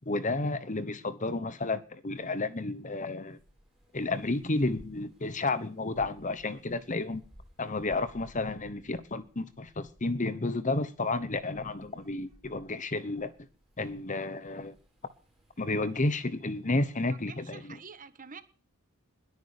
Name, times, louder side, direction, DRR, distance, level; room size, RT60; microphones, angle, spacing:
voice 1, 0.1-3.4 3.9-7.2 7.6-13.3 13.8-14.8 15.6-17.8, left 2 dB, 35° left, 1.1 m, -31 dB
sound 1, 2.1-17.5, equal, ahead, 6.9 m, -60 dB
voice 2, 17.1-18.4, right 5 dB, 35° right, 1.5 m, -47 dB
21.0 x 9.7 x 6.7 m
head